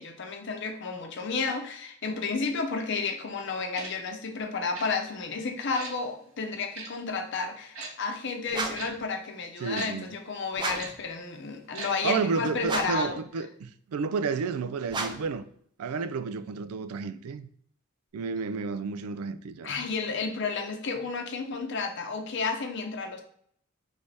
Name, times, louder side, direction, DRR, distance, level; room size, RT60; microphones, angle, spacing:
voice 1, 0.0-13.2 19.6-23.2, left 4 dB, 55° left, 0.7 m, -32 dB
Tick-tock, 3.7-3.9 4.7-4.9 5.7-5.9 6.7-6.9 7.8-7.9 8.7-8.9 9.8-9.9 10.7-10.9 11.7-11.9 12.2-12.3, right 3 dB, 70° right, 0.9 m, -38 dB
sound 1, 8.5-9.0 10.5-11.0 12.6-13.1 14.9-15.4, right 3 dB, 20° right, 0.4 m, -33 dB
voice 2, 9.6-10.2 12.0-15.4 15.8-17.5 18.1-19.7, right 5 dB, 90° right, 0.4 m, -31 dB
3.3 x 3.3 x 4.0 m
head